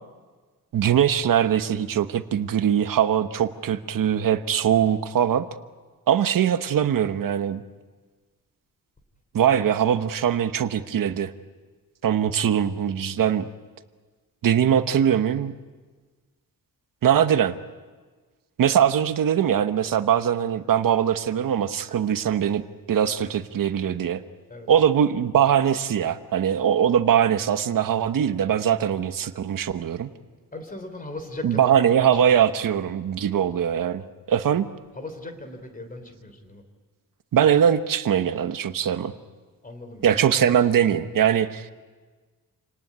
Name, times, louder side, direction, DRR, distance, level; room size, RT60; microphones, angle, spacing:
voice 1, 0.7-5.5 6.1-7.6 9.3-11.3 12.0-13.5 14.4-15.5 17.0-17.5 18.6-22.6 22.9-24.2 24.7-30.1 31.4-34.7 37.3-39.1 40.0-41.7, right 9 dB, 65° right, 10 dB, 1.1 m, -21 dB
voice 2, 30.5-32.7 34.9-36.6 39.6-40.4, left 2 dB, 25° left, 7 dB, 3.3 m, -38 dB
28.5 x 19.0 x 9.4 m, 1.4 s
wide cardioid pair, 170°, 35 cm